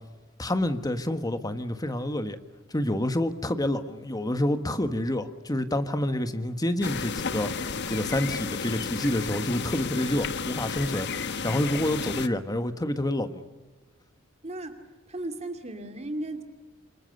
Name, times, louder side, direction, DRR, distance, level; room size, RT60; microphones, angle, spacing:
voice 1, 0.4-2.4 2.7-7.5 7.9-13.4, left 1 dB, 20° left, 9 dB, 1.5 m, -28 dB
sound 1, 6.8-12.3, left 5 dB, 60° left, 1.2 m, -32 dB
voice 2, 14.4-14.8 15.1-16.4, right 1 dB, 35° right, 6 dB, 2.5 m, -35 dB
28.0 x 24.5 x 6.8 m, 1.2 s
head